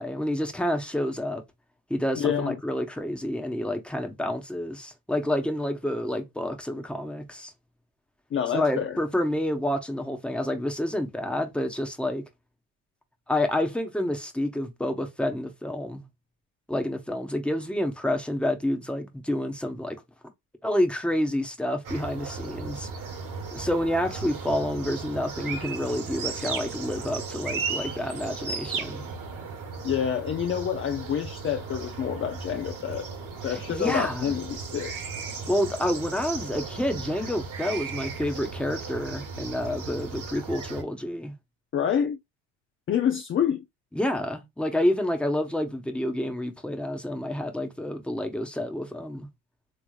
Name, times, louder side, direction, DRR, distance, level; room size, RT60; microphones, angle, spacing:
voice 1, 0.0-1.4 1.9-7.5 8.5-12.2 13.3-16.0 16.7-20.0 20.6-22.9 23.5-29.0 33.5-34.4 35.5-41.3 43.9-49.3, left 1 dB, ahead, 1.0 m, -28 dB
voice 2, 2.2-2.5 8.3-9.0 29.8-33.1 33.4-34.9 41.7-42.2 42.9-43.6, left 8 dB, 30° left, 0.4 m, -27 dB
sound 1, 21.8-40.8, right 5 dB, 45° right, 1.4 m, -36 dB
3.4 x 3.2 x 2.4 m
cardioid pair, 100°, 45 cm